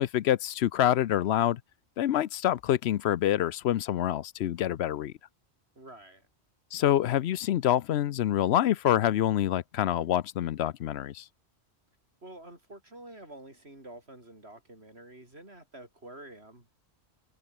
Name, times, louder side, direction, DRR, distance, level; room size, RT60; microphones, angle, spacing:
voice 1, 0.0-1.6 2.0-5.1 6.7-11.2, left 11 dB, 75° left, 0.9 m, -26 dB
voice 2, 5.8-6.3 12.2-16.7, right 1 dB, 70° right, 7.0 m, -48 dB
omnidirectional pair, 1.1 m